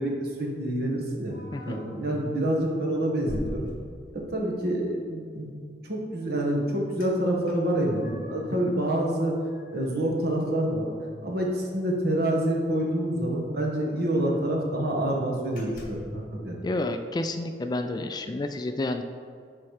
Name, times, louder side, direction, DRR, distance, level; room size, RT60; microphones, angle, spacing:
voice 1, 0.0-1.3 1.6-3.7 4.1-5.5 5.8-9.4 9.7-10.9 11.2-16.6, right 1 dB, 60° right, -1 dB, 1.5 m, -27 dB
sound 1, 1.3-2.0 2.5-2.7 3.3-4.4 7.0-7.1 7.5-8.5 8.9-10.8 11.1-11.2 11.5-11.7 12.8-12.9 13.1-13.2 13.7-14.6 15.0-15.2 15.6-16.2, equal, 50° left, 1.6 m, -44 dB
voice 2, 16.6-19.0, left 2 dB, 25° left, 7 dB, 0.3 m, -30 dB
10.5 x 4.3 x 4.9 m, 2.2 s
head